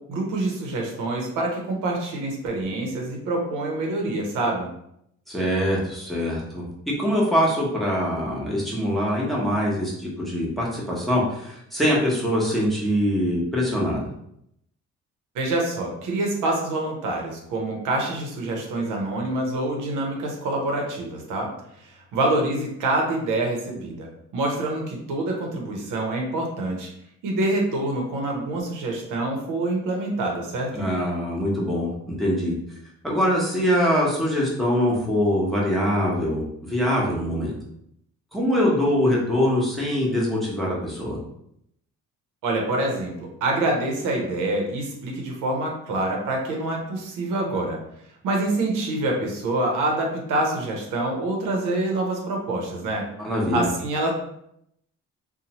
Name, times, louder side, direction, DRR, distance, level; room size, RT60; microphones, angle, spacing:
voice 1, 0.0-4.7 15.3-21.5 21.8-26.9 27.2-30.9 42.4-47.8 48.2-53.1 53.5-54.1, right 2 dB, 85° right, 0 dB, 0.8 m, -26 dB
voice 2, 5.3-6.7 7.0-14.0 30.7-32.5 33.0-37.5 38.3-41.2 53.2-53.7, equal, ahead, -5 dB, 0.9 m, -23 dB
2.7 x 2.1 x 2.9 m, 0.75 s
cardioid pair, 90°, 30 cm